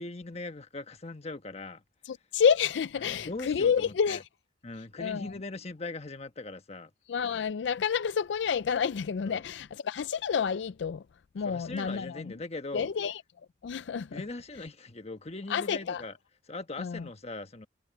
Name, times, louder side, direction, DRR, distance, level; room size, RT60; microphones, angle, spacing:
voice 1, 0.0-1.8 3.0-4.2 4.6-6.9 9.2-9.4 11.4-12.9 14.1-16.2 16.4-17.7, left 2 dB, 35° left, 1.3 m, -40 dB
voice 2, 2.1-4.2 5.0-5.3 7.1-11.0 11.3-12.2 12.7-13.2 13.6-14.2 15.5-16.0 16.8-17.1, left 7 dB, 80° left, 0.4 m, -29 dB
head